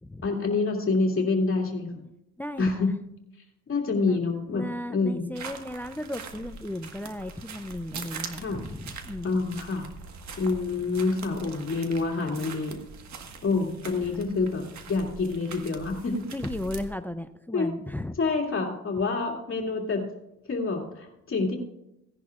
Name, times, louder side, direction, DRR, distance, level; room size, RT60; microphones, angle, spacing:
voice 1, 0.2-2.0 2.6-2.9 3.7-4.6 4.9-5.2 8.4-8.6 9.2-9.9 10.4-12.8 13.4-16.2 17.5-17.7 18.2-20.0 20.5-21.6, left 3 dB, 45° left, 0 dB, 2.5 m, -27 dB
voice 2, 2.4-2.9 4.1-4.2 4.5-9.4 14.1-14.2 16.3-18.2, left 1 dB, 5° left, 11 dB, 0.5 m, -35 dB
sound 1, 5.3-16.9, right 5 dB, 65° right, 1.6 m, -42 dB
17.0 x 10.5 x 2.5 m, 0.88 s
cardioid pair, 90°, 30 cm